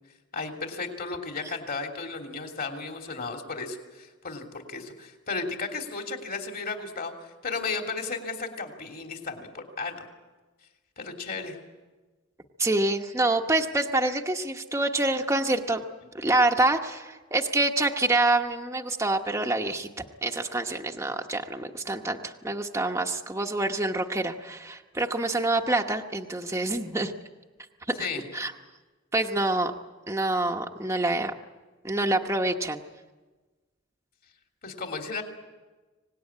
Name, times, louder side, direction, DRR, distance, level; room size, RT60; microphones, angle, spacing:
voice 1, 0.3-10.1 11.0-11.6 28.0-28.2 34.6-35.2, left 4 dB, 45° left, 3 dB, 3.0 m, -34 dB
voice 2, 12.6-15.8 16.1-19.9 20.2-27.1 27.9-28.1 28.3-28.5 29.1-29.7 30.1-31.3 31.8-32.8, right 2 dB, 15° right, 3 dB, 1.0 m, -26 dB
25.0 x 19.0 x 9.9 m, 1.3 s
head